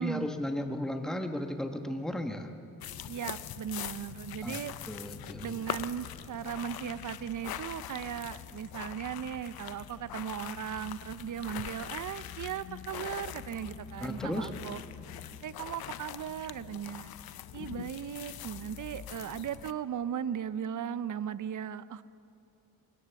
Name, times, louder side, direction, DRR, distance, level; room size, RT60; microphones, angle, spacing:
voice 1, 0.0-2.5 4.4-5.6 14.0-14.5, left 1 dB, ahead, 5 dB, 1.3 m, -35 dB
sound 1, 2.8-19.7, left 11 dB, 80° left, 0.7 m, -43 dB
voice 2, 3.1-4.7 5.4-14.8 15.4-17.1 17.5-22.0, right 9 dB, 55° right, 15 dB, 0.7 m, -37 dB
22.5 x 17.5 x 7.1 m, 2.6 s
cardioid pair, 95°, 35 cm